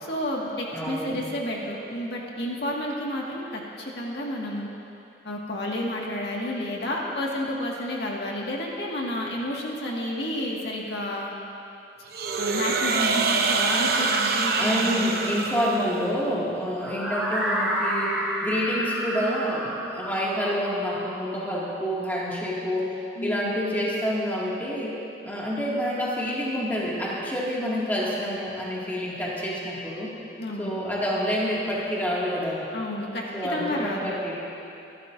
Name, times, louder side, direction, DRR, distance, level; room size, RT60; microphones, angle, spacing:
voice 1, 0.1-4.7 5.2-11.3 12.4-15.0 15.3-15.4 23.2-23.5 30.4-30.8 32.7-33.2 33.5-34.1, left 1 dB, 70° left, -3 dB, 1.9 m, -30 dB
voice 2, 0.7-1.2 14.6-30.1 30.6-32.7 33.3-34.4, equal, 10° left, -6 dB, 2.1 m, -28 dB
sound 1, 12.1-16.2, right 4 dB, 60° right, 0.9 m, -25 dB
sound 2, 16.8-22.7, equal, 5° right, 2.6 m, -31 dB
25.0 x 12.0 x 2.6 m, 2.8 s
head